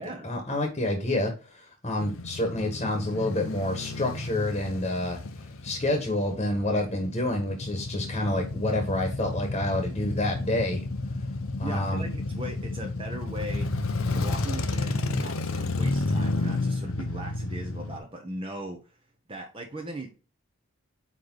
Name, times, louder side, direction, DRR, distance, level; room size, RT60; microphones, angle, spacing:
voice 1, 0.2-5.2 5.6-10.8 11.6-12.0, left 1 dB, 30° left, 3 dB, 1.4 m, -28 dB
Male speech man speaking / Motorcycle / Idling, 2.0-18.0, left 2 dB, 75° left, 0.8 m, -31 dB
voice 2, 11.6-19.0 19.3-20.1, right 1 dB, 25° right, 2 dB, 1.0 m, -39 dB
9.2 x 3.3 x 3.9 m, 0.35 s
head